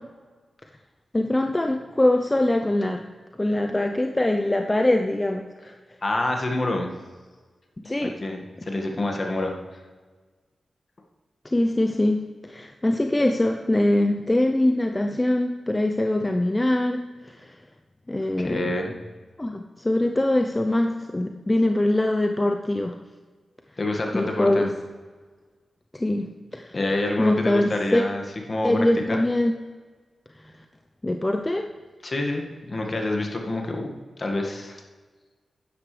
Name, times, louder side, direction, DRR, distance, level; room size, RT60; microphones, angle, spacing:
voice 1, 1.1-3.0 3.4-5.5 7.8-8.2 11.4-17.5 18.1-18.8 19.4-23.0 24.1-24.7 25.9-26.8 27.2-28.0 28.6-29.6 31.0-31.7, left 1 dB, 25° left, 5 dB, 0.7 m, -23 dB
voice 2, 6.0-6.9 8.2-9.5 18.4-18.9 23.8-24.7 26.7-28.2 28.5-28.8 29.1-29.2 32.0-32.4 32.7-33.9 34.2-34.8, left 2 dB, 50° left, 2 dB, 1.9 m, -27 dB
12.0 x 9.8 x 3.4 m, 1.4 s
supercardioid pair, 40°, 0 cm